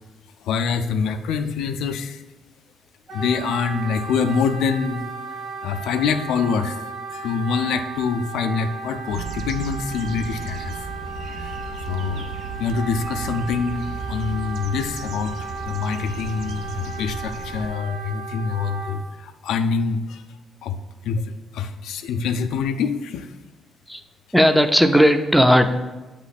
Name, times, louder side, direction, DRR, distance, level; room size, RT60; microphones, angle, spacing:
voice 1, 0.4-2.2 3.1-5.1 5.6-6.8 7.1-10.8 11.4-11.5 11.9-12.3 12.6-20.2 20.6-20.8 21.0-21.2 21.5-23.3, left 5 dB, 85° left, 8 dB, 0.4 m, -25 dB
Wind instrument woodwind instrument, 3.1-19.0, right 3 dB, 40° right, 1.6 m, -35 dB
sound 1, 9.1-17.7, right 5 dB, 75° right, 0.5 m, -35 dB
voice 2, 24.3-25.7, equal, ahead, 7 dB, 0.4 m, -16 dB
8.0 x 3.0 x 4.1 m, 1.2 s
cardioid pair, 90°, 0 cm